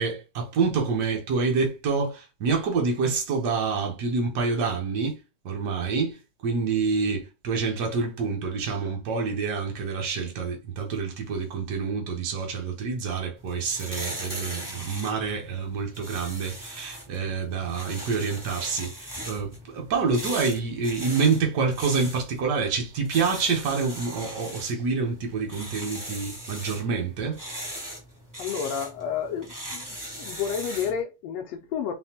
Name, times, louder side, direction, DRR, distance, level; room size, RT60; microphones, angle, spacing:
voice 1, 0.0-5.2 5.4-27.4, right 4 dB, 65° right, 1.0 m, -27 dB
sound 1, 13.4-31.0, equal, 10° right, 1.1 m, -39 dB
voice 2, 28.4-29.8 30.1-31.9, left 7 dB, 75° left, 1.6 m, -30 dB
4.2 x 3.9 x 2.9 m
omnidirectional pair, 3.4 m